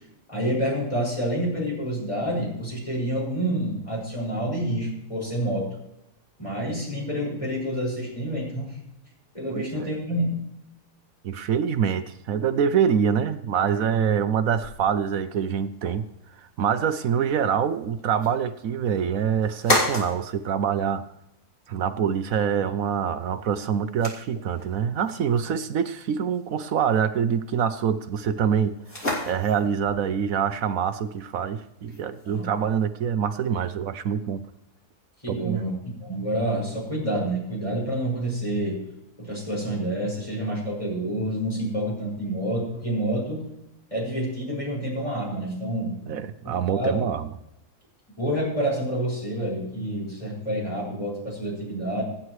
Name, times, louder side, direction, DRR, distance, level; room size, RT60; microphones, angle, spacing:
voice 1, 0.3-5.7 6.4-8.7 9.3-10.4 32.3-32.5 35.2-35.7 36.0-38.8 39.2-43.4 43.9-45.9 46.4-47.1 48.2-52.0, right 1 dB, 20° left, -4 dB, 5.8 m, -28 dB
voice 2, 9.5-9.9 11.2-16.1 16.6-21.0 21.7-28.8 29.3-34.4 35.3-35.6 46.1-47.2, right 7 dB, 65° right, 11 dB, 1.0 m, -25 dB
sound 1, 14.6-33.0, left 1 dB, 45° left, 3.4 m, -35 dB
26.0 x 9.7 x 3.2 m, 0.85 s
omnidirectional pair, 1.8 m